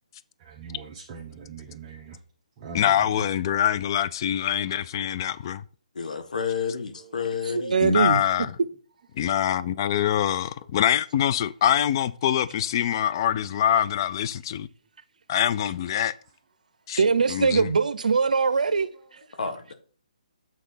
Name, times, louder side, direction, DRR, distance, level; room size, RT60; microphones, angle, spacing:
voice 1, 0.4-2.2 2.6-3.2 7.0-7.3, right 5 dB, 30° right, 1.0 m, -42 dB
voice 2, 2.7-5.6 7.8-8.5 9.1-14.7 15.3-16.1 16.9-17.0 17.3-17.7, left 10 dB, 35° left, 0.4 m, -24 dB
voice 3, 5.9-7.8 19.4-19.7, left 6 dB, 70° left, 1.4 m, -30 dB
voice 4, 7.5-8.2 17.0-18.9, right 5 dB, 80° right, 0.6 m, -21 dB
8.0 x 3.7 x 5.5 m
hypercardioid pair, 160°, 4 cm